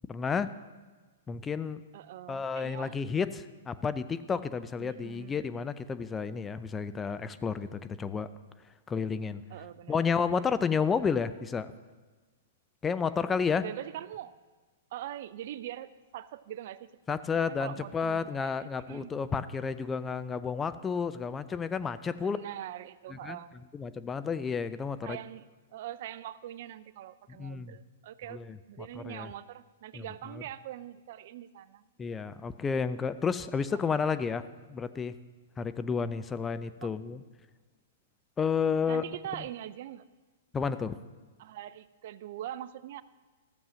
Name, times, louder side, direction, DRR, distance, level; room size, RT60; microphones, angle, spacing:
voice 1, 0.1-0.5 1.3-1.8 2.3-8.3 8.9-9.4 9.9-11.7 12.8-13.6 17.1-22.4 23.1-23.4 23.7-25.2 27.4-27.7 28.3-29.3 29.9-30.0 32.0-35.1 35.6-37.2 38.4-39.0 40.5-41.0, left 6 dB, 15° left, 13 dB, 0.5 m, -31 dB
voice 2, 1.9-3.0 4.8-5.6 9.5-10.0 13.6-14.4 14.9-16.9 17.5-19.1 22.2-23.6 25.0-25.5 25.7-31.8 33.7-33.8 36.8-36.9 38.9-40.0 41.4-43.0, right 12 dB, 55° right, 17 dB, 0.5 m, -42 dB
14.0 x 7.2 x 6.3 m, 1.4 s
hypercardioid pair, 120°, 0 cm